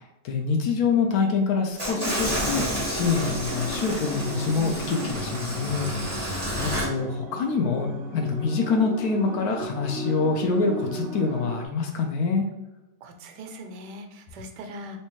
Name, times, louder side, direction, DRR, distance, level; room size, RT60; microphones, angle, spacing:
voice 1, 0.0-12.4, left 4 dB, 70° left, 2 dB, 1.0 m, -26 dB
sound 1, 1.8-6.9, equal, 20° right, 1.3 m, -30 dB
sound 2, 1.9-11.7, right 1 dB, 60° right, 0.6 m, -37 dB
voice 2, 13.0-15.0, equal, 80° right, 5 dB, 1.2 m, -40 dB
3.2 x 2.9 x 3.0 m, 1.0 s
omnidirectional pair, 1.8 m